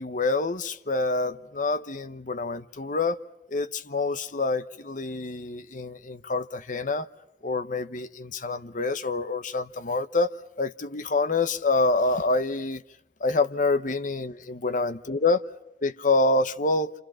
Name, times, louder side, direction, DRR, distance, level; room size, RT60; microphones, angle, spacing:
voice 1, 0.0-3.2 3.5-7.1 7.4-12.8 13.2-15.4 15.8-16.9, left 3 dB, 50° left, 1.1 m, -26 dB
29.0 x 27.5 x 5.8 m
head